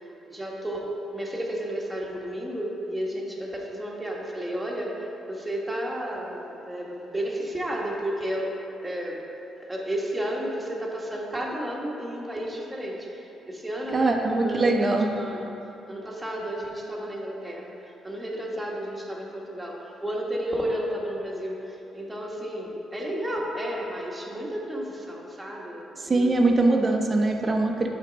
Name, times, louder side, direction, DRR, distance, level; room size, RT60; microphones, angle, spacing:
voice 1, 0.2-9.2 9.7-15.5 15.9-26.5, equal, 10° right, -3 dB, 1.5 m, -32 dB
voice 2, 13.9-15.1 26.0-27.9, right 2 dB, 30° right, 2 dB, 1.0 m, -22 dB
11.5 x 4.5 x 4.0 m, 2.9 s
cardioid pair, 90°, 0 cm